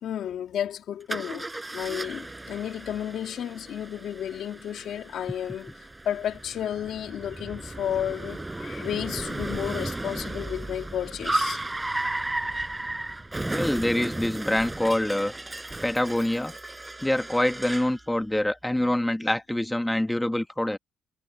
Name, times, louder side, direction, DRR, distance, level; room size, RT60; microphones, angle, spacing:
voice 1, 0.0-5.7 6.0-11.6, left 10 dB, 70° left, 2.2 m, -32 dB
Car, 1.1-18.0, right 2 dB, 15° right, 5.6 m, -34 dB
voice 2, 13.4-15.3 15.8-16.5 17.0-20.8, left 1 dB, 10° left, 1.4 m, -25 dB
cardioid pair, 90°, 0 cm